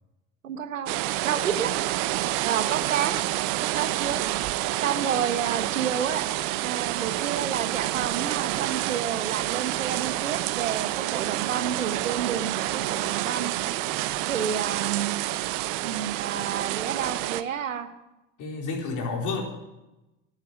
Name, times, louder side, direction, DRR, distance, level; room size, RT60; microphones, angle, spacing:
voice 1, 0.4-0.9 1.2-1.7 2.4-3.2 3.6-4.2 4.8-6.2 6.6-13.5 14.3-15.3 15.8-17.9, right 8 dB, 85° right, 11 dB, 1.1 m, -30 dB
sound 1, 0.9-17.4, right 16 dB, 60° right, 0.8 m, -28 dB
voice 2, 18.4-19.4, left 4 dB, 50° left, 0 dB, 4.2 m, -30 dB
11.5 x 10.5 x 9.0 m, 0.98 s
hypercardioid pair, 65°, 38 cm